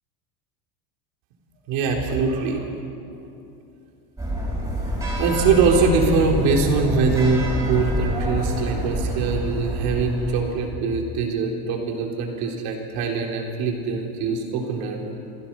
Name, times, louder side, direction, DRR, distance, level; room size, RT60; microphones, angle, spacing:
voice 1, 1.7-2.7 5.2-15.0, right 4 dB, 55° right, 1 dB, 3.9 m, -22 dB
sound 1, 4.2-10.7, equal, 5° right, 5.8 m, -27 dB
27.0 x 16.0 x 6.0 m, 2.8 s
supercardioid pair, 145°, 42 cm